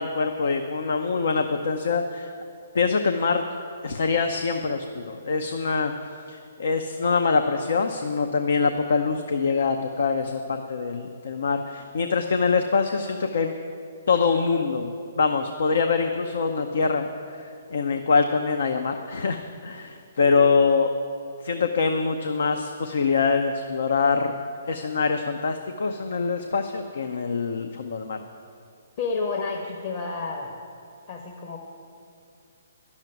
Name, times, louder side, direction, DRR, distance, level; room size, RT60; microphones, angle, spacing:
voice 1, 0.0-2.3 2.7-3.4 3.8-5.9 6.3-13.5 14.1-17.1 17.4-20.9 21.4-24.3 24.7-28.2, left 4 dB, 70° left, 6 dB, 0.7 m, -24 dB
voice 2, 29.0-30.5 31.1-31.6, left 4 dB, 45° left, 1 dB, 1.1 m, -30 dB
11.0 x 7.3 x 9.2 m, 2.4 s
hypercardioid pair, 140°, 0 cm